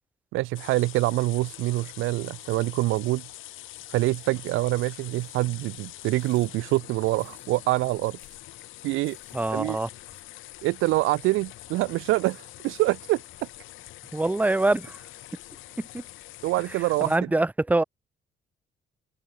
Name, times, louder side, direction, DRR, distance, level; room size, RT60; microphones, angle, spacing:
voice 1, 0.3-3.3 3.9-8.2 8.8-9.2 9.5-9.8 10.6-13.2 16.4-17.1, right 19 dB, 90° right, 0.4 m, -25 dB
sound 1, 0.5-17.2, left 16 dB, 90° left, 1.8 m, -45 dB
sound 2, 4.7-5.5 6.2-6.5 7.2-7.5 8.2-8.4 9.1-9.5 10.1-10.2, left 1 dB, 10° left, 7.0 m, -61 dB
voice 2, 9.3-9.9 14.1-15.0 15.9-16.0 17.0-17.8, right 2 dB, 10° right, 0.7 m, -24 dB
cardioid pair, 90°, 20 cm